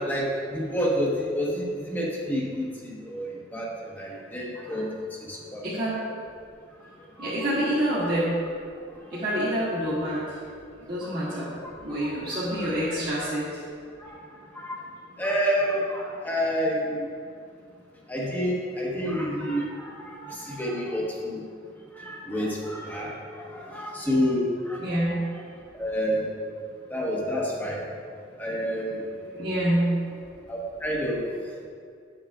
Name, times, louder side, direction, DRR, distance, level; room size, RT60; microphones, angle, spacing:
voice 1, 0.0-3.7 4.0-4.9 5.3-5.9 7.2-7.4 11.2-11.4 12.0-13.0 14.0-14.2 14.5-14.8 15.2-17.1 18.1-21.4 21.9-24.9 25.2-25.3 25.7-26.3 26.9-27.9 28.4-29.0 30.5-31.2, equal, 10° left, -4 dB, 1.2 m, -29 dB
voice 2, 5.6-6.0 7.2-8.3 9.1-11.5 11.8-13.6 23.2-23.9 24.8-25.2 28.9-30.1, right 1 dB, 50° right, -12 dB, 1.7 m, -28 dB
8.9 x 7.4 x 2.4 m, 2.3 s
head